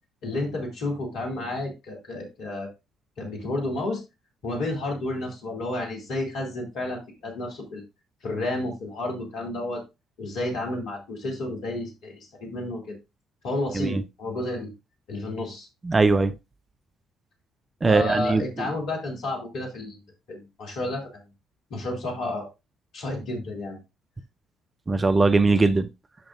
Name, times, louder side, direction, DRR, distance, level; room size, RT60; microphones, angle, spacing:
voice 1, 0.2-2.7 3.2-4.0 4.4-7.8 8.2-9.8 10.2-13.0 13.4-14.7 15.1-15.7 17.8-20.0 20.3-21.1 21.7-22.5 22.9-23.8, left 2 dB, 60° left, 2.6 m, -31 dB
voice 2, 15.8-16.3 17.8-18.4 24.9-25.9, right 3 dB, 25° right, 0.5 m, -20 dB
12.0 x 5.1 x 2.5 m
figure-of-eight pair, 45°, 0 cm